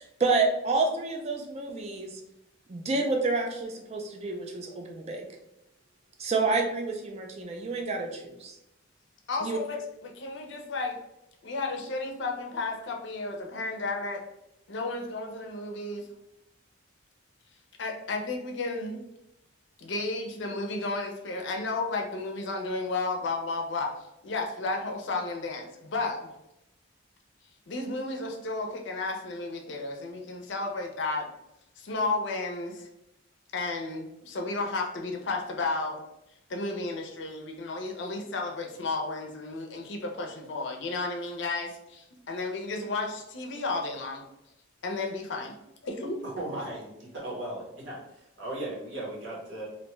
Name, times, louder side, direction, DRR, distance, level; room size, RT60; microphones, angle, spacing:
voice 1, 0.0-2.2 2.7-5.3 6.2-8.5 9.4-9.6, right 3 dB, 30° right, 2 dB, 0.3 m, -29 dB
voice 2, 9.3-11.0 11.4-14.2 14.7-16.1 17.8-19.0 19.8-23.9 24.2-26.3 27.7-31.3 31.8-32.9 33.5-36.0 36.5-44.2 44.8-45.5 45.8-46.2, left 3 dB, 60° left, 3 dB, 0.5 m, -33 dB
voice 3, 46.2-49.6, right 1 dB, 65° right, -5 dB, 1.0 m, -37 dB
2.5 x 2.2 x 3.0 m, 0.87 s
head